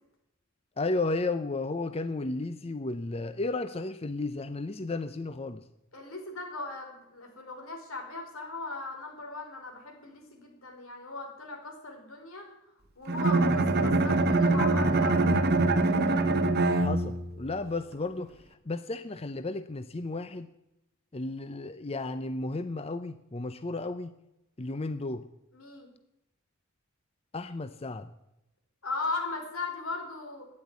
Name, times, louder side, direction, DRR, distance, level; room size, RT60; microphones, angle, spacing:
voice 1, 0.8-5.6 16.7-18.3 18.7-20.5 21.1-24.1 24.6-25.2 27.3-28.1, left 2 dB, 30° left, 11 dB, 0.6 m, -33 dB
voice 2, 5.9-12.5 13.0-15.2 25.5-25.9 28.8-30.5, left 3 dB, 85° left, 2 dB, 4.6 m, -38 dB
Bowed string instrument, 13.1-17.4, right 2 dB, 50° right, 1.2 m, -24 dB
13.0 x 9.8 x 9.4 m, 0.88 s
head